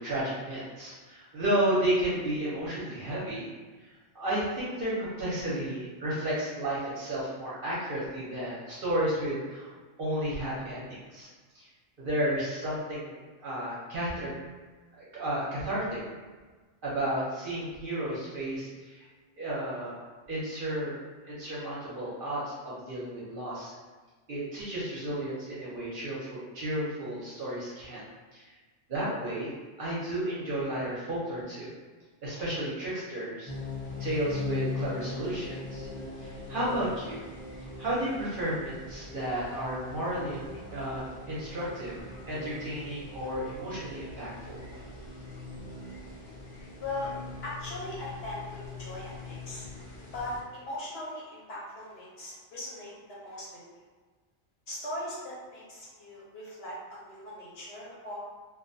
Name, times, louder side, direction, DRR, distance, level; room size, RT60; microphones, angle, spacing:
voice 1, 0.0-3.5 3.8-9.7 10.0-11.3 11.5-11.7 12.0-14.3 15.0-16.0 16.8-19.1 19.4-20.0 20.3-21.0 21.3-23.7 24.3-28.0 28.3-28.5 28.9-31.7 32.2-33.5 34.0-35.9 36.2-37.2 37.8-40.4 40.7-41.9 42.3-44.6, right 1 dB, 55° right, -7 dB, 0.7 m, -32 dB
sound 1, 33.5-50.4, left 3 dB, 35° left, 0.5 m, -41 dB
voice 2, 46.8-47.1 47.4-49.7 50.1-53.6 54.7-58.2, left 1 dB, 60° left, -7 dB, 0.9 m, -39 dB
2.3 x 2.1 x 2.6 m, 1.3 s
omnidirectional pair, 1.3 m